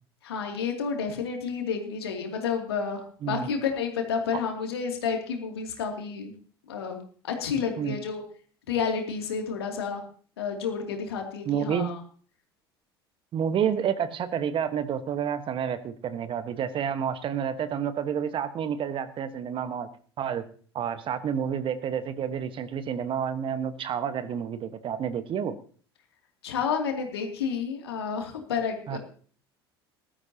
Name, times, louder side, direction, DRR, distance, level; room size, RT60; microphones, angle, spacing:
voice 1, 0.2-6.3 6.7-8.2 8.7-10.0 10.4-12.0 26.4-29.0, left 6 dB, 75° left, 3 dB, 2.6 m, -30 dB
voice 2, 3.2-3.5 7.8-8.0 11.5-12.0 13.3-19.9 20.2-20.4 20.7-25.5 28.9-29.0, right 8 dB, 40° right, 12 dB, 1.3 m, -29 dB
20.0 x 13.0 x 2.9 m, 0.43 s
figure-of-eight pair, 65°, 13 cm